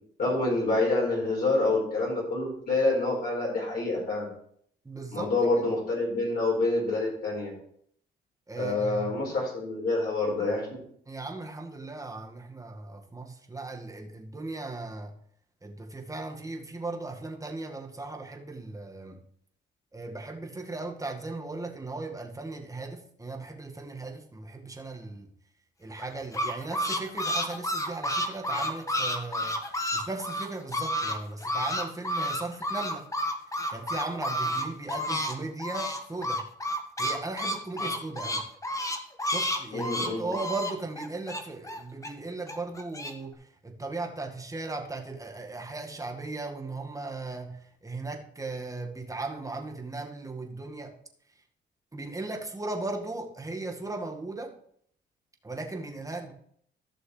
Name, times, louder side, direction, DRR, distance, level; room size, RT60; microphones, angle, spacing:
voice 1, 0.2-4.3 5.1-7.5 8.6-10.7 37.8-37.9 39.7-40.3, left 2 dB, 50° left, -4 dB, 4.8 m, -27 dB
voice 2, 4.8-5.3 8.5-9.2 11.1-15.1 15.6-19.2 19.9-25.3 25.8-33.0 33.7-36.5 37.0-38.4 39.3-50.9 51.9-54.5 55.4-56.3, right 3 dB, 15° right, 2 dB, 1.8 m, -37 dB
sound 1, 26.0-31.2 31.4-35.3 35.6-42.1 42.5-43.1, equal, 15° left, 1.4 m, -30 dB
15.0 x 6.3 x 3.3 m, 0.66 s
cardioid pair, 90°, 20 cm